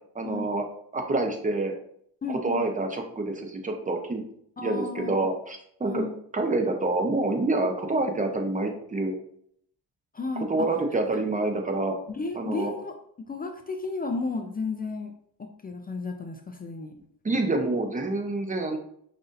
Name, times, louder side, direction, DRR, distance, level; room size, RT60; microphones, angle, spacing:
voice 1, 0.1-0.6 0.9-1.7 2.3-4.2 4.6-6.0 6.3-9.1 10.4-12.0 12.3-12.7 17.2-18.8, right 2 dB, 20° right, 3 dB, 0.8 m, -27 dB
voice 2, 2.2-2.7 4.6-5.1 5.8-6.1 10.1-10.7 12.1-12.9 13.3-15.1 15.4-16.9, left 3 dB, 25° left, 5 dB, 0.3 m, -33 dB
5.4 x 2.7 x 2.5 m, 0.67 s
cardioid pair, 85°, 44 cm